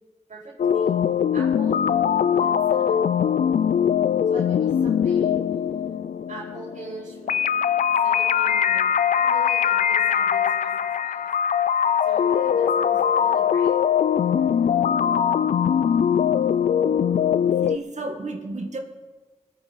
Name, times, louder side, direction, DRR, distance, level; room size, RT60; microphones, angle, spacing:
voice 1, 0.3-0.9 1.3-1.9 2.2-3.0 4.3-5.4 6.3-7.4 8.0-8.9 9.1-10.7 11.0-11.3 12.0-13.8, right 2 dB, 80° right, -9 dB, 5.2 m, -41 dB
sound 1, 0.6-17.8, left 8 dB, 85° left, 0.4 m, -21 dB
voice 2, 17.5-18.8, right 2 dB, 65° right, 3 dB, 1.9 m, -32 dB
21.5 x 9.0 x 5.3 m, 1.3 s
cardioid pair, 60°, 13 cm